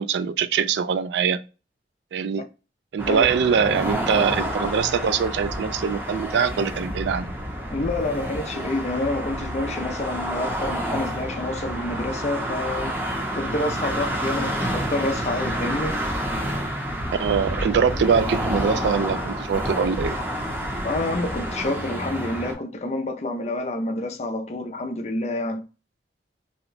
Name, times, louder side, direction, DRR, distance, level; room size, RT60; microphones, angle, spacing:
voice 1, 0.0-1.4 2.1-2.4 2.9-7.3 17.2-20.2, right 6 dB, 80° right, 0.3 m, -23 dB
sound 1, 3.0-22.5, equal, 10° right, 0.7 m, -29 dB
voice 2, 7.7-13.0 13.3-16.0 20.8-25.6, left 2 dB, 40° left, 0.5 m, -28 dB
2.8 x 2.1 x 3.9 m
head